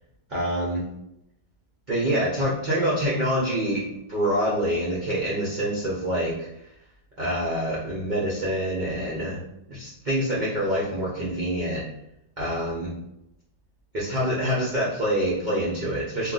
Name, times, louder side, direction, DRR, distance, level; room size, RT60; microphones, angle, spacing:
voice 1, 0.3-0.8 1.9-6.5 7.2-9.4 9.7-11.8 12.4-12.9 13.9-16.3, equal, 60° right, -6 dB, 0.5 m, -26 dB
2.5 x 2.3 x 3.8 m, 0.82 s
omnidirectional pair, 1.7 m